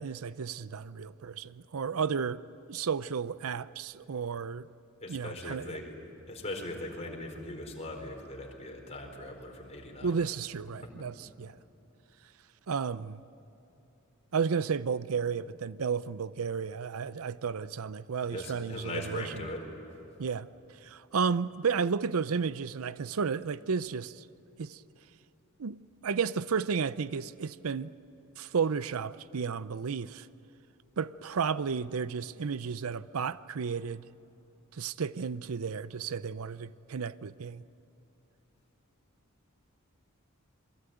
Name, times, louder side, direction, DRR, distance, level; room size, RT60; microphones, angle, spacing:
voice 1, 0.0-2.4 2.7-4.7 5.1-5.6 10.0-11.6 12.7-13.2 14.3-19.2 20.2-20.5 20.8-24.2 24.6-24.8 25.6-27.9 28.4-30.3 31.0-34.1 34.7-37.6, right 6 dB, 85° right, 0.6 m, -32 dB
voice 2, 5.0-5.9 6.3-10.2 10.8-10.9 18.2-19.7, left 1 dB, 30° left, 4.4 m, -40 dB
27.0 x 22.0 x 9.2 m
head